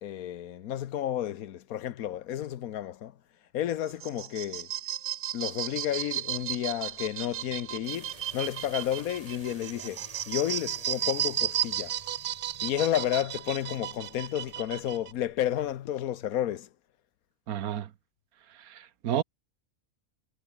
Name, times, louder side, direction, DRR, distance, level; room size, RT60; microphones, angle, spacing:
voice 1, 0.0-3.2 3.5-4.7 5.3-12.0 12.6-16.7, left 11 dB, 80° left, 1.3 m, -31 dB
sound 1, 3.8-15.1, right 11 dB, 70° right, 0.5 m, -34 dB
sound 2, 5.7-15.8, right 1 dB, 25° right, 7.8 m, -54 dB
voice 2, 17.5-17.9 18.5-19.2, right 10 dB, 85° right, 1.4 m, -31 dB
omnidirectional pair, 1.5 m